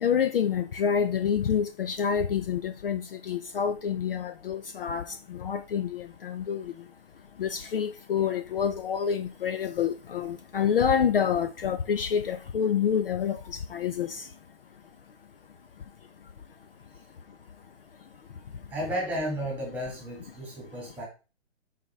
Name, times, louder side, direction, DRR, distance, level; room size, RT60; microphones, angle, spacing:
voice 1, 0.0-5.0 5.3-6.7 7.4-14.2, left 7 dB, 50° left, 0.6 m, -27 dB
voice 2, 18.7-21.1, equal, 5° right, 1.9 m, -33 dB
11.5 x 4.2 x 3.3 m
hypercardioid pair, 160°, 35 cm